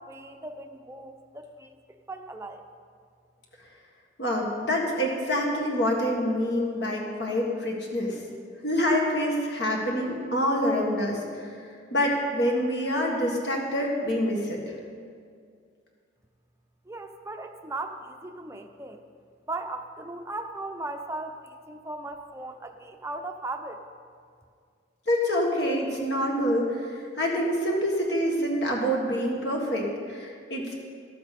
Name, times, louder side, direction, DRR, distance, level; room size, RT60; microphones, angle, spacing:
voice 1, 0.0-2.6 16.9-19.0 19.5-23.8, right 2 dB, 15° right, 6 dB, 0.6 m, -37 dB
voice 2, 4.2-8.2 8.6-11.5 11.9-14.8 25.1-30.8, equal, 60° left, -1 dB, 1.8 m, -26 dB
14.0 x 12.5 x 4.3 m, 2.2 s
head